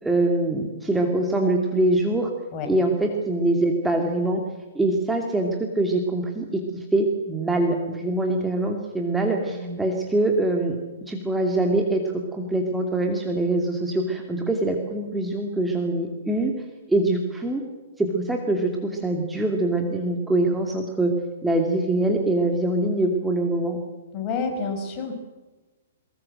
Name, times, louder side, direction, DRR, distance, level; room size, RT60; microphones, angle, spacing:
voice 1, 0.0-2.3 2.7-4.4 4.7-6.6 6.9-10.8 11.1-12.0 12.3-16.5 16.9-17.6 18.0-21.1 21.4-23.8, right 2 dB, 5° right, 2 dB, 2.6 m, -23 dB
voice 2, 24.1-25.1, left 4 dB, 30° left, 4 dB, 5.7 m, -29 dB
23.0 x 21.0 x 7.8 m, 1.2 s
figure-of-eight pair, 115°, 0 cm